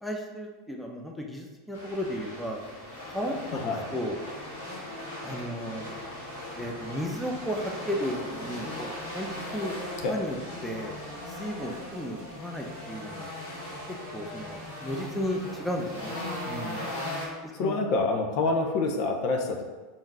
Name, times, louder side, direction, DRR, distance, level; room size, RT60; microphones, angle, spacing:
voice 1, 0.0-2.6 3.1-4.2 5.2-5.8 6.6-9.7 10.1-10.4 10.6-10.9 11.3-13.3 14.1-16.8 17.4-17.8, equal, ahead, 0 dB, 0.6 m, -34 dB
sound 1, 1.7-17.3, left 1 dB, 90° left, 1.4 m, -38 dB
voice 2, 3.5-3.9 10.0-10.2 17.5-19.6, left 3 dB, 55° left, 3 dB, 0.5 m, -27 dB
3.7 x 2.6 x 4.7 m, 1.3 s
hypercardioid pair, 85°, 0 cm